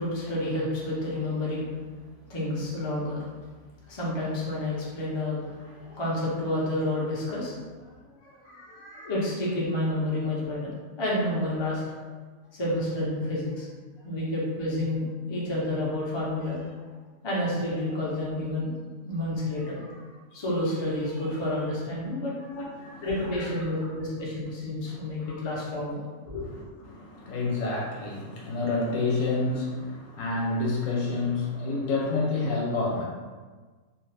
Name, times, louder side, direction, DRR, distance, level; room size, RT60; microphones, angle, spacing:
voice 1, 0.0-1.7 2.3-3.2 3.9-7.9 8.2-11.8 12.5-13.7 14.0-16.7 17.2-18.8 19.0-20.0 20.3-22.5 23.0-26.4, left 1 dB, 35° left, -6 dB, 0.4 m, -30 dB
voice 2, 22.5-23.5 24.9-25.4 26.8-33.0, left 3 dB, 70° left, -3 dB, 1.0 m, -29 dB
2.6 x 2.4 x 3.3 m, 1.4 s
omnidirectional pair, 1.5 m